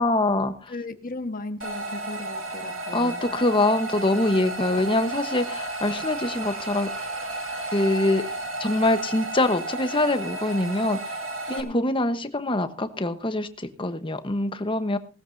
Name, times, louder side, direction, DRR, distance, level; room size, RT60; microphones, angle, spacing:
voice 1, 0.0-0.7 2.9-7.1 7.7-8.2 8.6-11.2 11.5-15.0, left 2 dB, 25° left, 10 dB, 1.1 m, -24 dB
voice 2, 0.7-3.4 11.5-11.9, left 2 dB, 40° left, 8 dB, 1.3 m, -36 dB
sound 1, 1.6-11.6, right 2 dB, 70° right, 2.2 m, -33 dB
19.0 x 14.0 x 2.7 m, 0.37 s
head